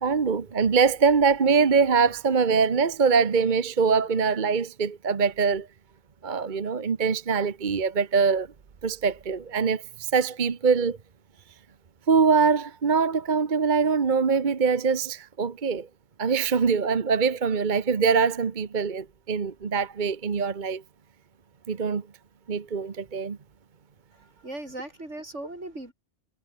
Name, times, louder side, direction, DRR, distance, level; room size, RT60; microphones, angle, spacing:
voice 1, 0.0-5.7 6.2-8.5 8.8-11.0 12.1-15.9 16.2-20.8 21.7-22.0 22.5-23.4, right 5 dB, 45° right, 1.2 m, -23 dB
voice 2, 24.1-25.9, right 1 dB, 80° right, 7.4 m, -38 dB
omnidirectional pair, 1.2 m